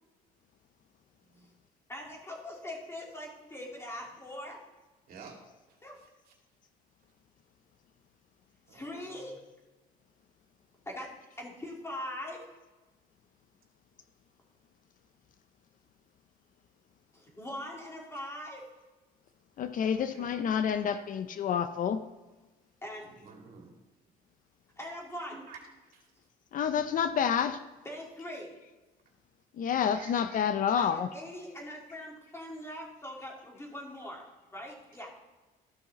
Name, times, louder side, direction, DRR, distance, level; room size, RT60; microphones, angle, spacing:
voice 1, 1.9-4.6 5.8-6.0 8.7-9.4 10.9-11.1 11.4-12.4 17.1-18.6 22.8-23.2 24.8-25.4 27.8-28.5 30.8-35.1, left 1 dB, 15° left, -2 dB, 3.0 m, -42 dB
voice 2, 5.1-5.4 5.7-6.3 8.7-9.3 20.0-21.0 23.2-23.7 25.3-25.6 25.9-26.1 29.9-30.2, right 5 dB, 60° right, 1 dB, 2.4 m, -51 dB
voice 3, 19.6-22.0 26.5-27.6 29.5-31.1, left 8 dB, 50° left, 10 dB, 0.6 m, -29 dB
14.0 x 5.8 x 4.2 m, 1.2 s
cardioid pair, 110°, 17 cm